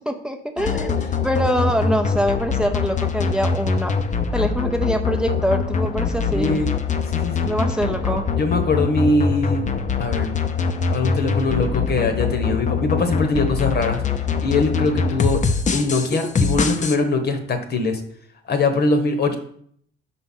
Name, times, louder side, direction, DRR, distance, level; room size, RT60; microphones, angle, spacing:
voice 1, 0.1-4.0 4.3-6.7 7.5-8.3, equal, 5° right, 5 dB, 0.6 m, -24 dB
sound 1, 0.6-17.0, left 5 dB, 40° left, 0.7 m, -23 dB
voice 2, 6.3-6.7 7.1-7.5 8.4-9.6 10.0-10.3 10.9-14.0 14.4-15.4 15.7-18.0 18.5-19.3, left 3 dB, 55° left, 7 dB, 1.2 m, -22 dB
5.6 x 4.3 x 5.5 m, 0.63 s
cardioid pair, 90°, 20 cm